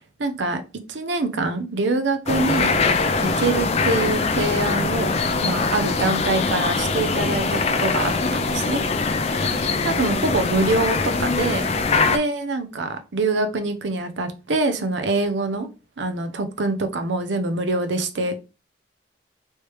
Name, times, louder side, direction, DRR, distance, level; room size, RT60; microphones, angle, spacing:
voice 1, 0.2-0.6 0.9-2.7 3.2-5.2 5.4-8.8 9.8-11.6 12.1-15.7 16.0-18.4, right 3 dB, 70° right, 0.6 m, -24 dB
sound 1, 2.3-12.2, left 4 dB, 35° left, 0.4 m, -22 dB
3.2 x 3.2 x 3.0 m
head